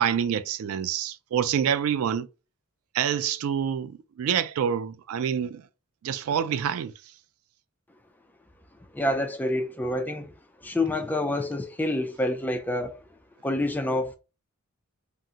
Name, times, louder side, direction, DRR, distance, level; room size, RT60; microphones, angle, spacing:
voice 1, 0.0-2.3 2.9-5.6 6.0-6.9, right 8 dB, 75° right, 0.3 m, -27 dB
voice 2, 8.9-10.3 10.6-13.0 13.4-14.1, left 1 dB, 10° left, 0.3 m, -27 dB
3.6 x 2.0 x 2.7 m
head